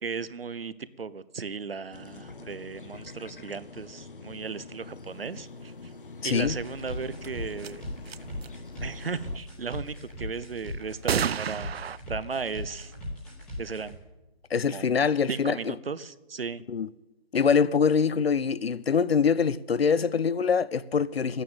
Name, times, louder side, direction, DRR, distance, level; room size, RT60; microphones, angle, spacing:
voice 1, 0.0-5.9 6.2-7.8 8.8-11.7 12.1-12.9 13.6-14.0 14.6-14.9 15.3-16.6, right 5 dB, 70° right, 0.8 m, -36 dB
sound 1, 1.9-9.4, left 3 dB, 60° left, 0.9 m, -45 dB
voice 2, 6.2-6.5 14.5-15.7 16.7-16.9 17.3-21.4, left 6 dB, 90° left, 0.6 m, -24 dB
sound 2, 6.4-13.9, left 1 dB, ahead, 1.1 m, -38 dB
sound 3, 7.2-7.3 7.6-7.7 8.1-8.5 11.1-12.0, right 8 dB, 85° right, 0.5 m, -29 dB
13.0 x 9.2 x 8.8 m
figure-of-eight pair, 170°, 30 cm